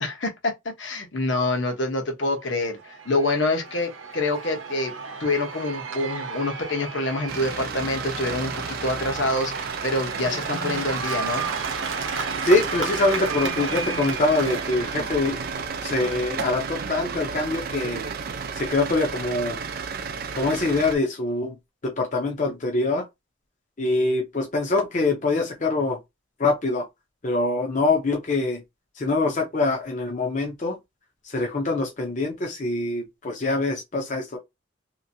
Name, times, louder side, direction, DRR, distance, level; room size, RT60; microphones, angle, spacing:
voice 1, 0.0-0.5 0.8-4.9 5.2-11.5, left 2 dB, 65° left, 0.9 m, -26 dB
Cheering / Applause / Crowd, 2.6-17.3, right 4 dB, 80° right, 0.7 m, -34 dB
sound 1, 7.3-21.0, right 5 dB, 50° right, 0.4 m, -32 dB
voice 2, 12.4-15.4 15.8-18.0 18.5-19.6 20.3-21.6 21.8-23.1 23.8-26.0 26.4-26.9 27.2-28.6 29.0-30.8 31.2-34.4, left 2 dB, 40° left, 0.6 m, -24 dB
2.9 x 2.6 x 2.6 m
head